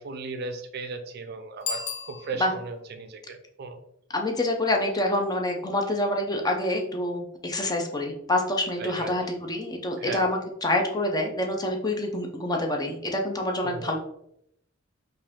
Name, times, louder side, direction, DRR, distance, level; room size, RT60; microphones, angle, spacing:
voice 1, 0.0-3.8 8.8-9.2 10.0-10.3 13.6-13.9, right 3 dB, 55° right, 8 dB, 0.4 m, -36 dB
Bicycle bell, 1.6-2.8, left 6 dB, 60° left, 0.7 m, -35 dB
voice 2, 4.1-14.0, left 1 dB, 20° left, 2 dB, 0.6 m, -27 dB
4.5 x 2.6 x 3.6 m, 0.74 s
head